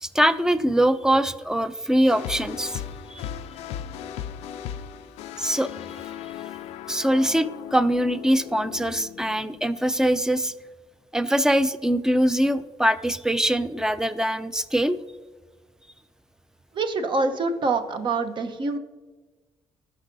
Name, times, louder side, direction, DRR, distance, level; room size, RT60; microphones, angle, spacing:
voice 1, 0.0-2.8 3.1-3.3 5.4-5.7 6.9-10.5 11.1-15.0, equal, 5° right, 13 dB, 0.5 m, -23 dB
sound 1, 2.1-10.2, left 9 dB, 85° left, 0.4 m, -37 dB
voice 2, 16.7-18.8, right 3 dB, 50° right, 7 dB, 0.8 m, -25 dB
13.5 x 5.5 x 2.7 m, 1.3 s
supercardioid pair, 70°, 11 cm